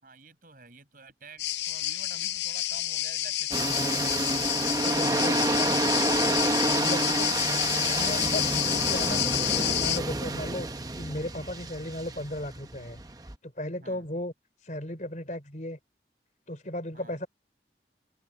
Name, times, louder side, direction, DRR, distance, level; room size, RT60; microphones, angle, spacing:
voice 1, 0.0-4.2 13.8-14.0 16.9-17.2, right 3 dB, 50° right, 6.1 m, -50 dB
sound 1, 1.4-10.0, left 15 dB, 75° left, 0.6 m, -29 dB
sound 2, 3.5-13.4, right 2 dB, 20° right, 0.9 m, -29 dB
voice 2, 4.8-5.8 6.8-7.3 7.9-10.7 11.0-13.0 13.4-14.3 14.6-15.8 16.5-17.3, left 1 dB, 45° left, 4.5 m, -36 dB
open air
head